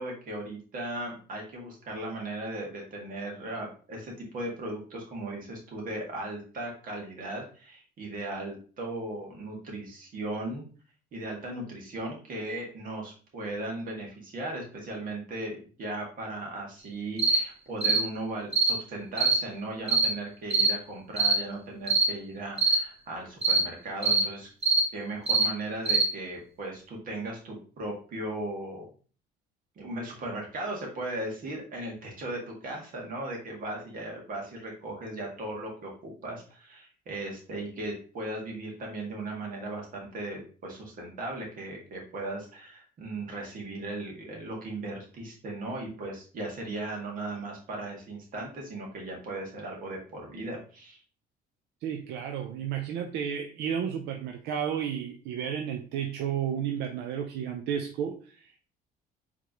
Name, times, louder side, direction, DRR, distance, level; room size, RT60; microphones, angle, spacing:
voice 1, 0.0-10.6 11.1-24.5 24.9-28.9 29.8-51.0, right 2 dB, 55° right, -1 dB, 1.9 m, -37 dB
sound 1, 17.2-17.4 17.8-18.0 18.5-18.8 19.2-19.4 19.9-20.1 20.5-20.7 21.2-21.4 21.9-22.1 22.6-22.8 23.4-23.6 24.0-24.3 24.6-24.9 25.3-25.5 25.9-26.1, right 3 dB, 40° right, 1.0 m, -23 dB
voice 2, 51.8-58.7, right 8 dB, 80° right, 5 dB, 0.5 m, -32 dB
4.8 x 3.6 x 2.9 m, 0.39 s
cardioid pair, 110°, 17 cm